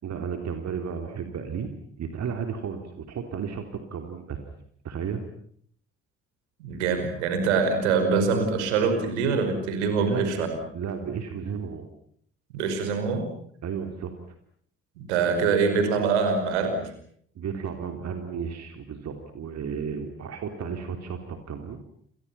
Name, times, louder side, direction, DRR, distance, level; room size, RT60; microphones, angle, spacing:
voice 1, 0.0-1.7 2.0-4.4 4.8-5.2 10.0-10.3 10.7-11.9 13.6-14.1 17.3-21.8, right 6 dB, 50° right, 6 dB, 3.6 m, -33 dB
voice 2, 6.6-10.5 12.5-13.3 15.0-16.9, right 5 dB, 75° right, 7 dB, 5.4 m, -24 dB
29.5 x 28.5 x 5.8 m, 0.63 s
figure-of-eight pair, 45°, 35 cm